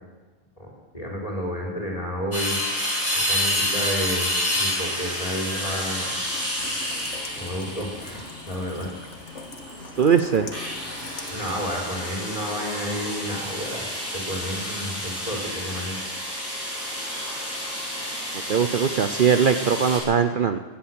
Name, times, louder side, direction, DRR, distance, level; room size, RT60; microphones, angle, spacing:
voice 1, 0.6-2.6 3.1-6.1 7.3-8.9 11.3-16.0, equal, 30° left, -2 dB, 4.7 m, -31 dB
sound 1, 2.3-20.0, left 1 dB, 10° left, 5.6 m, -30 dB
Rain, 6.2-11.8, left 3 dB, 90° left, 1.9 m, -42 dB
voice 2, 10.0-10.5 18.5-20.6, right 7 dB, 50° right, 9 dB, 0.9 m, -20 dB
16.0 x 11.5 x 7.8 m, 1.2 s
omnidirectional pair, 1.2 m